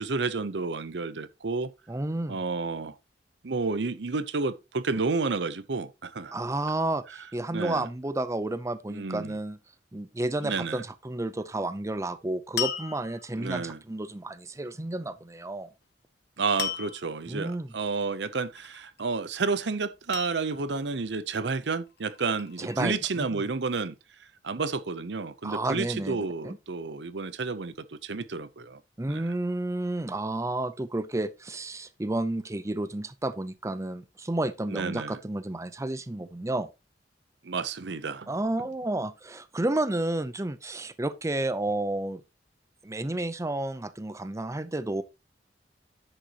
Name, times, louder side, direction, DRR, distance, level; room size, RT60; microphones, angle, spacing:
voice 1, 0.0-1.7 2.3-3.0 3.4-6.4 7.5-7.9 8.9-9.4 10.4-10.8 13.4-13.8 16.4-23.9 24.4-28.8 29.1-29.2 34.7-35.2 37.4-38.3, right 4 dB, 75° right, 0.7 m, -31 dB
voice 2, 1.9-2.4 6.3-9.6 9.9-15.7 17.3-17.7 22.6-23.4 25.4-26.6 29.0-36.7 38.3-42.2 42.8-45.0, right 2 dB, 15° right, 0.6 m, -31 dB
sound 1, 12.6-13.5 16.6-17.2 18.5-19.1 20.1-20.9 21.9-22.8, left 9 dB, 65° left, 1.6 m, -35 dB
10.5 x 7.8 x 2.9 m
head